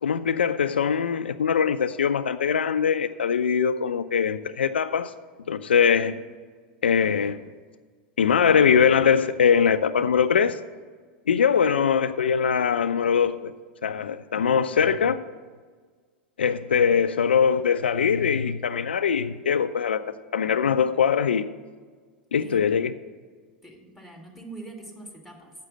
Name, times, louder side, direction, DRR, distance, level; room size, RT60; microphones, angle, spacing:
voice 1, 0.0-5.1 5.5-6.1 6.8-7.4 8.2-10.6 11.3-13.5 13.8-15.2 16.4-21.5 22.3-22.9, left 7 dB, 80° left, 0.3 m, -22 dB
voice 2, 11.5-11.8 22.4-22.6 23.6-25.5, right 2 dB, 5° right, 2.0 m, -43 dB
7.4 x 6.3 x 7.6 m
hypercardioid pair, 90°, 6 cm